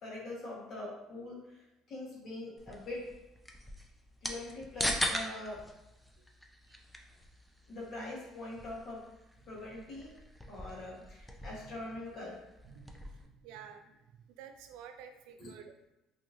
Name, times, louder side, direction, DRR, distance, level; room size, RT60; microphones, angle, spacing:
voice 1, 0.0-3.1 4.2-5.6 7.7-9.0 9.5-10.1 10.5-12.4 15.4-15.5, left 2 dB, 55° left, -4 dB, 1.2 m, -43 dB
sound 1, 2.6-13.3, equal, 5° left, 0.4 m, -41 dB
voice 2, 11.4-11.8 12.6-15.9, right 7 dB, 80° right, 6 dB, 0.3 m, -52 dB
2.7 x 2.7 x 2.6 m, 0.96 s
supercardioid pair, 80°, 0 cm